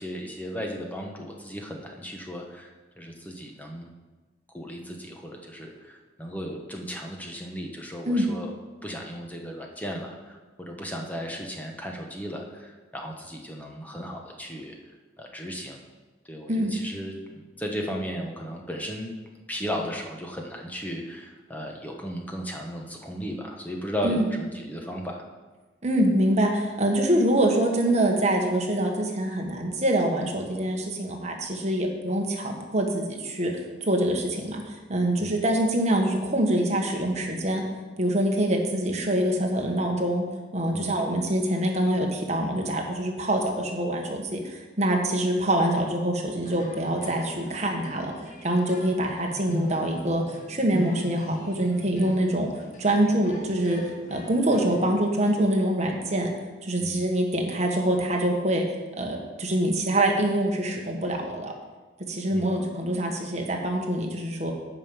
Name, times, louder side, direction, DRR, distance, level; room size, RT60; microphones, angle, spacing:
voice 1, 0.0-3.9 4.5-8.5 8.8-14.7 15.2-15.8 16.3-19.1 19.5-25.2 35.2-35.3 40.7-41.0 56.8-57.0 62.3-62.5, equal, 10° left, 1 dB, 1.0 m, -35 dB
voice 2, 25.8-37.6 38.0-40.2 40.5-56.3 56.6-58.7 59.0-61.5 62.1-64.5, right 1 dB, 35° right, 1 dB, 1.3 m, -25 dB
sound 1, 46.4-55.0, equal, 40° left, 1.4 m, -40 dB
9.0 x 5.3 x 7.0 m, 1.3 s
head